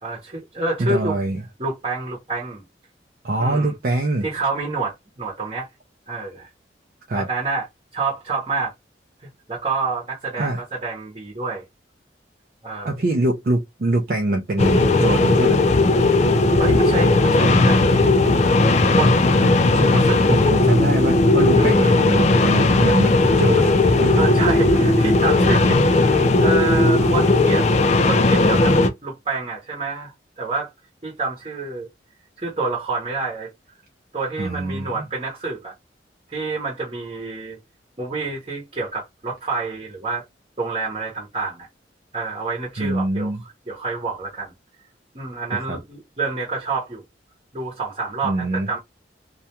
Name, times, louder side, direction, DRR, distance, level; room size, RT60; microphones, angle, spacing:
voice 1, 0.0-1.2 1.6-2.6 3.4-3.7 4.2-5.7 6.1-6.5 7.1-7.7 7.9-8.7 9.5-11.6 12.6-12.9 16.6-18.1 18.9-19.4 19.9-20.2 21.6-22.1 24.2-28.8 29.0-30.7 31.0-31.9 32.4-33.5 34.1-35.7 36.3-37.6 38.0-40.2 40.6-41.7 42.1-43.3 43.7-44.5 45.1-47.0 47.5-48.8, right 3 dB, 30° right, 0.8 m, -28 dB
voice 2, 0.8-1.4 3.2-4.3 7.1-7.3 10.4-10.6 12.8-15.6 16.7-16.8 19.4-20.0 20.3-24.3 34.4-35.1 42.8-43.4 45.5-45.8 48.2-48.7, right 2 dB, 50° right, 0.5 m, -24 dB
sound 1, 14.6-28.9, left 2 dB, 40° left, 0.3 m, -16 dB
2.3 x 2.2 x 2.8 m
head